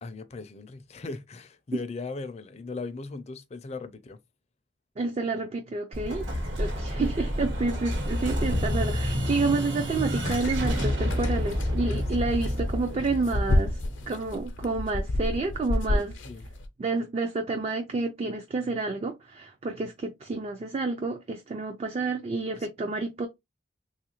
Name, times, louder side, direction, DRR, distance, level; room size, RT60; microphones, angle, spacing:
voice 1, 0.0-4.2 6.5-6.6 12.2-12.3 16.2-16.4 22.5-22.7, left 3 dB, 35° left, 0.4 m, -38 dB
voice 2, 5.0-6.2 6.6-13.8 14.1-16.2 16.8-23.3, right 3 dB, 35° right, 0.4 m, -29 dB
Explosion, 5.9-14.6, equal, 70° right, 1.1 m, -29 dB
sound 1, 10.2-16.7, left 1 dB, 80° left, 0.6 m, -31 dB
3.3 x 2.4 x 2.9 m
head